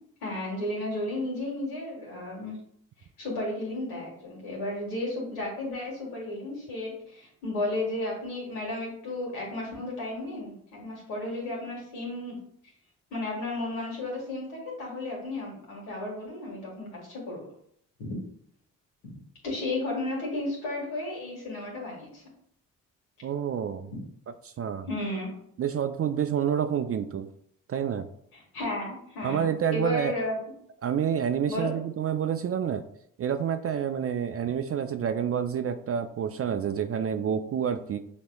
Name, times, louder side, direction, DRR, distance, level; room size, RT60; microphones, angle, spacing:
voice 1, 0.2-2.5 3.2-12.4 13.1-17.5 18.0-18.1 19.4-22.2 24.9-25.3 28.3-30.4 31.5-31.7, left 2 dB, 80° left, -2 dB, 1.7 m, -33 dB
voice 2, 23.2-23.9 24.4-24.9 25.6-27.3 27.7-28.1 29.2-30.1 30.8-32.8 33.2-38.0, right 8 dB, 40° right, 8 dB, 0.4 m, -28 dB
6.2 x 2.9 x 2.3 m, 0.68 s
hypercardioid pair, 40°, 38 cm